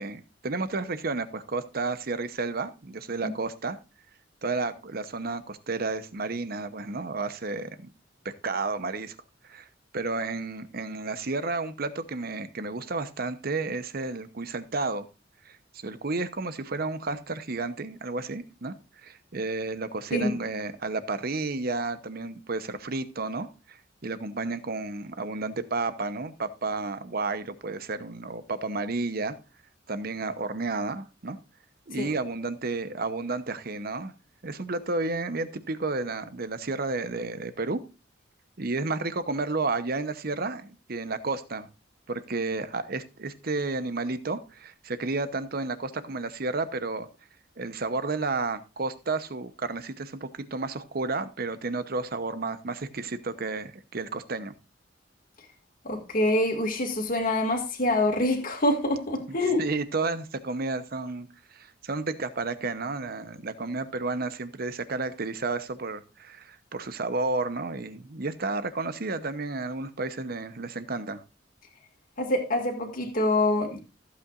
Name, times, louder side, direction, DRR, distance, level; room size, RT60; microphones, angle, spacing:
voice 1, 0.0-3.8 4.4-7.9 8.2-9.2 9.4-9.7 9.9-15.1 15.4-18.7 19.0-29.4 29.9-31.4 31.9-34.1 34.4-37.8 38.6-41.7 42.1-47.1 47.6-54.5 59.3-71.2, right 3 dB, 50° right, 0.9 m, -32 dB
voice 2, 55.8-59.6 72.2-73.8, left 1 dB, 45° left, 2.1 m, -25 dB
15.0 x 8.3 x 2.5 m
head